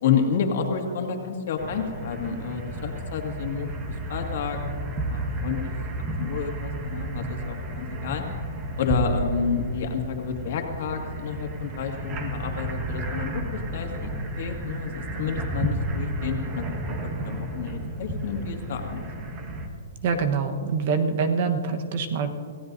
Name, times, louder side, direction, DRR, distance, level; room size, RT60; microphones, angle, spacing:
voice 1, 0.0-3.8 4.1-4.6 5.1-5.7 6.2-8.2 8.8-14.1 14.4-16.6 17.2-19.0, left 6 dB, 55° left, 2 dB, 2.1 m, -29 dB
sound 1, 1.6-19.7, right 1 dB, 25° right, 1.6 m, -32 dB
voice 2, 20.0-22.3, right 5 dB, 45° right, 7 dB, 1.2 m, -25 dB
27.5 x 16.5 x 2.7 m, 2.3 s
hypercardioid pair, 160°, 0 cm